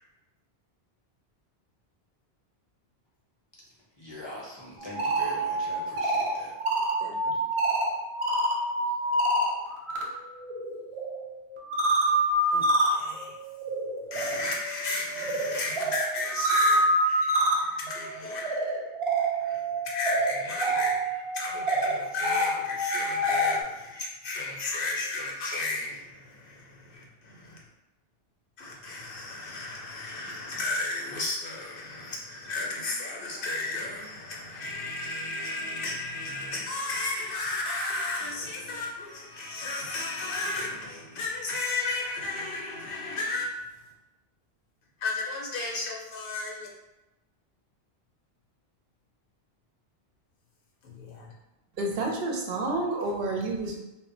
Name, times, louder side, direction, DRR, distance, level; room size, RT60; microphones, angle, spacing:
voice 1, 4.0-6.6, left 1 dB, 30° left, -6 dB, 0.6 m, -42 dB
sound 1, 4.8-10.0 10.4-23.6, right 1 dB, 50° right, 0.4 m, -27 dB
voice 2, 7.0-7.4 12.5-13.4 14.1-18.9 19.2-27.6 28.6-43.5 45.0-46.7 50.8-51.3, left 3 dB, 65° left, -2 dB, 0.8 m, -34 dB
voice 3, 51.8-53.7, right 2 dB, 70° right, 0 dB, 0.8 m, -29 dB
2.1 x 2.1 x 3.7 m, 0.99 s
omnidirectional pair, 1.0 m